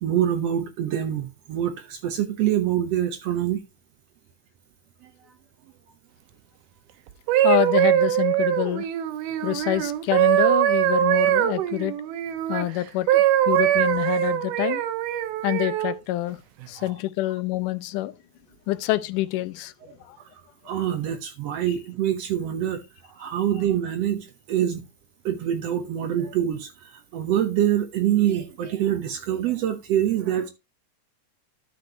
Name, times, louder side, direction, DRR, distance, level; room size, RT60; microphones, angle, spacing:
voice 1, 0.0-3.6 16.8-16.9 20.7-22.8 23.2-24.8 25.2-26.7 27.1-30.5, right 11 dB, 70° right, 1.6 m, -25 dB
sound 1, 7.1-12.7 13.1-16.0 16.6-16.9, right 13 dB, 85° right, 2.6 m, -22 dB
voice 2, 7.4-8.9 9.4-11.9 12.5-14.8 15.4-16.4 16.7-18.1 18.7-19.7 20.1-20.2, left 16 dB, 85° left, 2.2 m, -26 dB
12.0 x 6.6 x 2.8 m
omnidirectional pair, 3.6 m